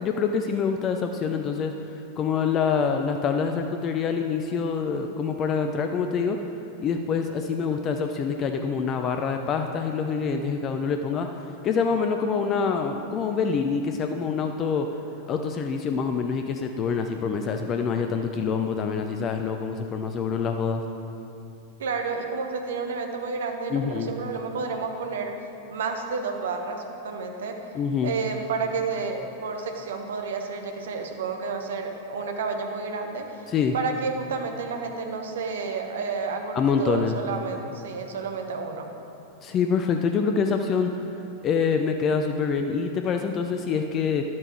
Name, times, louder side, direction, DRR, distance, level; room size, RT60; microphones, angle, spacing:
voice 1, 0.0-1.7 2.2-6.4 6.8-11.3 11.6-14.9 15.3-20.8 23.7-24.1 27.7-28.2 33.5-33.8 36.5-37.2 39.4-40.9 41.4-44.2, left 6 dB, 30° left, 5 dB, 0.5 m, -26 dB
voice 2, 21.8-25.4 25.7-27.6 28.0-33.4 33.7-38.9, right 4 dB, 60° right, 4 dB, 1.0 m, -30 dB
11.0 x 7.5 x 4.4 m, 2.8 s
figure-of-eight pair, 90°, 0 cm